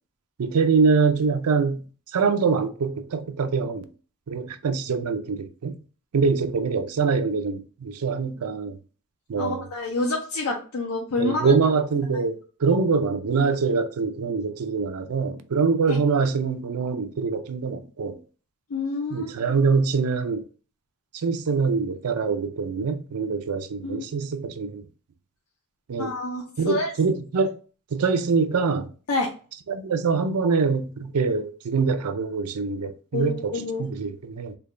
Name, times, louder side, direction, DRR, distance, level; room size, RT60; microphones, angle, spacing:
voice 1, 0.4-1.9 2.1-3.9 4.3-5.8 6.1-8.8 9.3-9.6 11.2-18.2 19.1-20.4 21.1-24.8 25.9-26.1 26.6-27.6 27.9-28.9 29.7-33.5 33.8-34.6, right 5 dB, 90° right, 0.5 m, -24 dB
voice 2, 9.4-11.5 15.9-16.0 18.7-19.3 23.8-24.1 26.0-26.9 29.1-29.3 33.1-33.9, left 2 dB, 85° left, 0.6 m, -28 dB
3.4 x 2.2 x 3.6 m
head